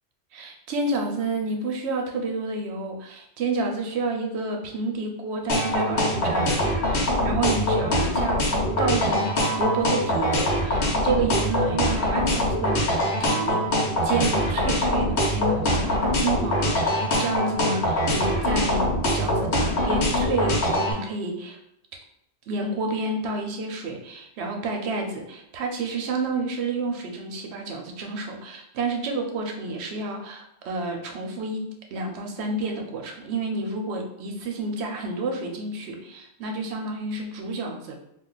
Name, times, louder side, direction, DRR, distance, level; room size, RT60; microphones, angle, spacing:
voice 1, 0.3-8.4 8.8-12.8 13.2-13.7 14.0-21.6 22.5-38.0, right 3 dB, 80° right, 2 dB, 0.9 m, -30 dB
sound 1, 5.5-20.9, left 1 dB, 80° left, 1.1 m, -23 dB
2.4 x 2.3 x 3.8 m, 0.76 s
omnidirectional pair, 1.1 m